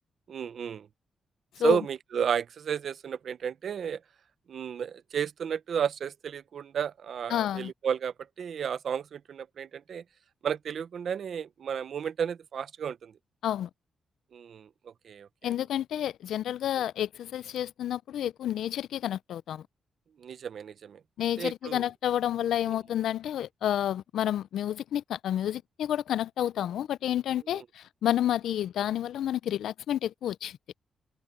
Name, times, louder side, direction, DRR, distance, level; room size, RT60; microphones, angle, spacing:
voice 1, 0.3-0.9 1.6-4.0 4.5-10.0 10.4-13.1 14.3-14.7 15.0-15.6 20.2-21.0 21.4-21.8 22.7-22.8 27.5-27.6, right 7 dB, 55° right, 0.7 m, -32 dB
voice 2, 7.3-7.7 13.4-13.7 15.4-19.6 21.2-30.6, left 11 dB, 90° left, 0.4 m, -30 dB
wide cardioid pair, 145°, 0 cm